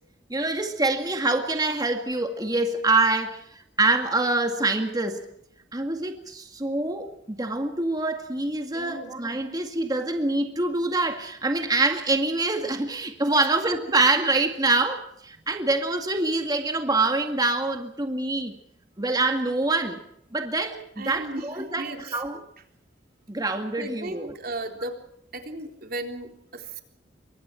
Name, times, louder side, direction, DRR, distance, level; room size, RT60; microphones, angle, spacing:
voice 1, 0.3-5.3 5.7-18.5 19.0-20.0 20.3-22.4 23.3-24.3, right 2 dB, 20° right, 5 dB, 2.1 m, -25 dB
voice 2, 8.7-9.2 21.0-22.2 23.8-25.0 25.3-26.8, right 2 dB, 55° right, 4 dB, 3.7 m, -36 dB
27.5 x 24.0 x 4.6 m, 0.76 s
head